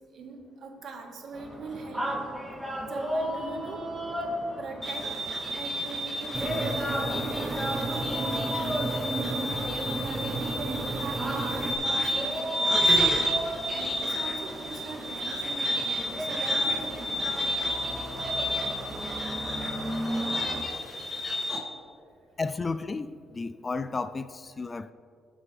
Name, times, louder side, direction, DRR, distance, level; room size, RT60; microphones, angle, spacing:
voice 1, 0.1-2.2 2.9-4.0 4.6-13.0 13.7-17.3 20.0-22.4 23.6-23.8 24.5-24.7, right 3 dB, 65° right, 1.8 m, -42 dB
sound 1, 1.3-20.6, equal, 10° right, 3.1 m, -35 dB
sound 2, 4.8-21.6, equal, 10° left, 2.9 m, -30 dB
sound 3, 6.3-11.7, right 3 dB, 30° right, 1.1 m, -33 dB
voice 2, 22.4-24.9, left 3 dB, 30° left, 0.4 m, -33 dB
19.0 x 7.4 x 3.5 m
cardioid pair, 90°, 0 cm